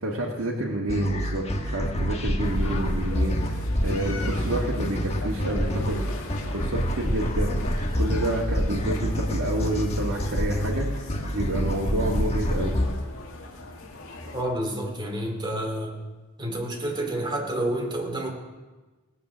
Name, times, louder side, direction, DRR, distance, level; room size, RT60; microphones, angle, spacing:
voice 1, 0.0-7.6 8.0-12.8, right 1 dB, 75° right, -3 dB, 1.7 m, -29 dB
sound 1, 0.9-12.9, equal, 30° left, 1.3 m, -27 dB
sound 2, 2.4-14.4, left 2 dB, 75° left, 2.1 m, -39 dB
voice 2, 14.3-16.0 16.4-18.3, right 1 dB, 20° right, 1 dB, 2.5 m, -29 dB
18.0 x 8.2 x 6.2 m, 1.2 s
head